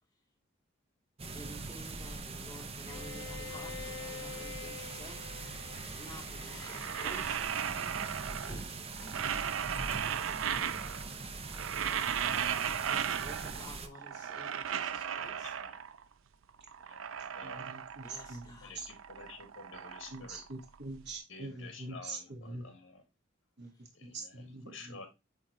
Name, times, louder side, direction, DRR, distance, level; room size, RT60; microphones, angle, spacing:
sound 1, 1.2-13.9, right 3 dB, 30° right, 0.7 m, -42 dB
voice 1, 1.3-5.2 5.8-7.4 8.2-9.0 12.8-15.5 18.0-18.7, left 1 dB, 20° left, 2.6 m, -51 dB
Bowed string instrument, 2.9-7.5, left 8 dB, 60° left, 0.6 m, -47 dB
sound 2, 6.5-8.7 9.0-11.1 11.4-13.7 13.9-16.0 16.5-18.5 18.8-21.0, right 8 dB, 80° right, 0.5 m, -36 dB
voice 2, 14.9-15.8 16.8-17.8 18.6-20.4 21.3-23.0 23.9-25.1, left 4 dB, 75° left, 2.2 m, -51 dB
voice 3, 17.4-18.9 20.1-22.7 23.6-25.0, right 2 dB, 60° right, 1.7 m, -44 dB
9.0 x 3.6 x 3.0 m
head